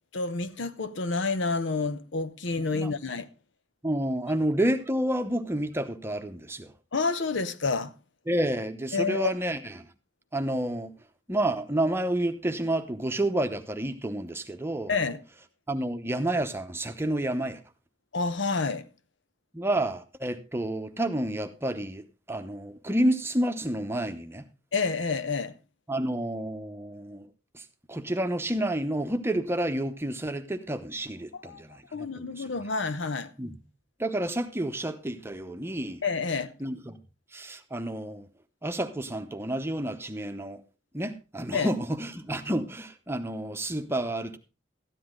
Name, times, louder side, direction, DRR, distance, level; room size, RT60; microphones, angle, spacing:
voice 1, 0.1-3.3 6.9-7.9 8.9-9.3 14.9-15.2 18.1-18.8 24.7-25.5 31.3-33.3 36.0-36.5 41.5-41.7, left 4 dB, 85° left, 0.9 m, -29 dB
voice 2, 3.8-6.7 8.3-9.9 10.3-10.9 11.3-14.9 15.7-17.6 19.5-24.5 25.9-27.3 27.5-32.5 33.4-33.6 34.0-36.0 36.6-37.0 37.3-38.3 38.6-40.6 40.9-44.4, right 1 dB, 15° right, 0.9 m, -30 dB
13.5 x 10.0 x 3.7 m
head